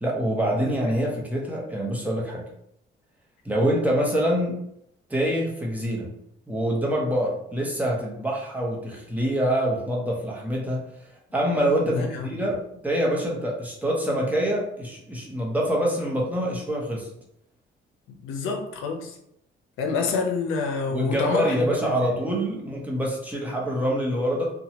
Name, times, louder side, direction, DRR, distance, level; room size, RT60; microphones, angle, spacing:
voice 1, 0.0-2.4 3.4-4.6 5.1-6.1 6.5-10.9 11.3-17.1 20.9-24.5, equal, 10° right, -3 dB, 0.8 m, -25 dB
voice 2, 11.9-12.4 18.1-19.2 19.8-22.2, left 4 dB, 90° left, 2 dB, 0.5 m, -28 dB
2.7 x 2.2 x 2.8 m, 0.75 s
cardioid pair, 90°, 20 cm